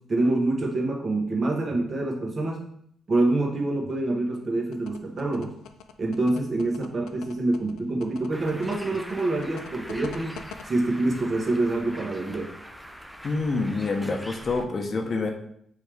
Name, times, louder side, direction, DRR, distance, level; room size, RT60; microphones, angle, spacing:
voice 1, 0.0-2.6 3.1-5.5 6.0-10.4 10.7-12.5, right 2 dB, 40° right, 0 dB, 1.0 m, -26 dB
sound 1, 4.7-10.6, left 8 dB, 85° left, 0.3 m, -43 dB
Bird, 8.3-14.6, equal, ahead, 0.4 m, -42 dB
voice 2, 13.2-15.3, left 3 dB, 45° left, 3 dB, 0.7 m, -27 dB
4.5 x 3.3 x 3.4 m, 0.68 s
cardioid pair, 90°, 0 cm